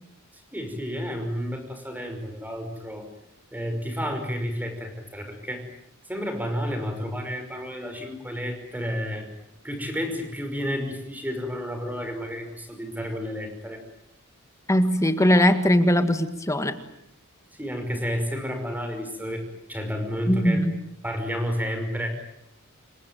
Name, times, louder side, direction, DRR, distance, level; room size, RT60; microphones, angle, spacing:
voice 1, 0.5-3.1 3.5-5.6 6.1-9.3 9.6-13.8 17.5-20.6 21.0-22.2, equal, 10° right, 6 dB, 5.6 m, -31 dB
voice 2, 14.7-16.8 20.3-20.8, equal, 15° left, 9 dB, 1.9 m, -20 dB
27.5 x 23.5 x 9.2 m, 0.76 s
head